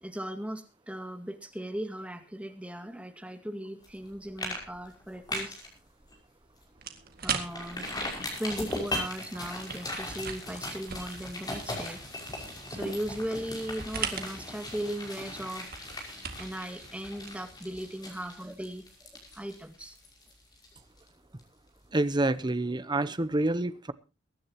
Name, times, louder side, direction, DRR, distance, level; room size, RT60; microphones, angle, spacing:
voice 1, 0.0-5.6 7.2-7.9 8.4-12.0 12.7-15.8 16.4-20.0, right 1 dB, 5° right, 6 dB, 2.0 m, -37 dB
sound 1, 3.8-4.1 4.4-4.6 4.9-5.7 6.1-6.2 6.6-6.7 7.5-21.1 21.4-21.5, left 1 dB, 20° left, 5.9 m, -38 dB
sound 2, 6.8-17.9, right 6 dB, 55° right, 2.1 m, -41 dB
voice 2, 21.9-23.9, right 2 dB, 25° right, 15 dB, 0.8 m, -27 dB
23.5 x 11.0 x 2.9 m, 0.31 s
head